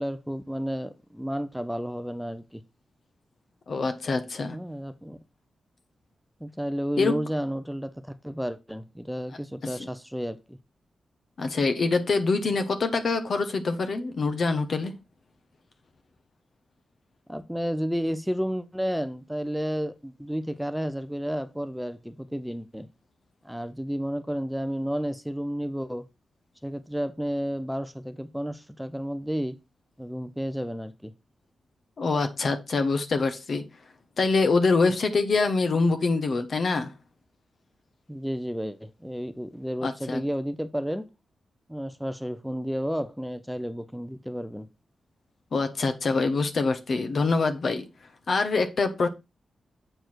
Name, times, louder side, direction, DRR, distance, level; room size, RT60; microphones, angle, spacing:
voice 1, 0.0-2.6 4.5-5.2 6.4-10.6 17.3-22.9 23.4-26.0 26.6-29.6 30.0-31.1 38.1-41.1 41.7-44.7, equal, ahead, 0.5 m, -32 dB
voice 2, 3.7-4.6 7.0-7.2 9.8-9.9 11.4-14.9 32.0-33.6 34.2-36.9 39.8-40.2 45.5-47.9 48.3-49.1, left 3 dB, 60° left, 1.1 m, -25 dB
7.8 x 4.6 x 4.4 m
wide cardioid pair, 95°, 0 cm